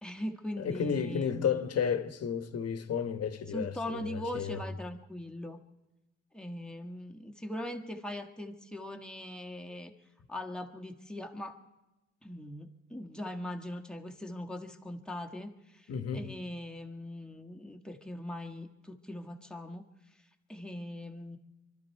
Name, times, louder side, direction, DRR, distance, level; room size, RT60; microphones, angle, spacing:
voice 1, 0.0-1.6 3.5-5.6 6.3-9.9 10.3-11.6 12.2-19.8 20.5-21.4, left 1 dB, 5° left, 1.6 m, -40 dB
voice 2, 0.6-4.6 15.9-16.3, left 7 dB, 55° left, 1.3 m, -32 dB
24.5 x 12.5 x 4.6 m
cardioid pair, 90°, 30 cm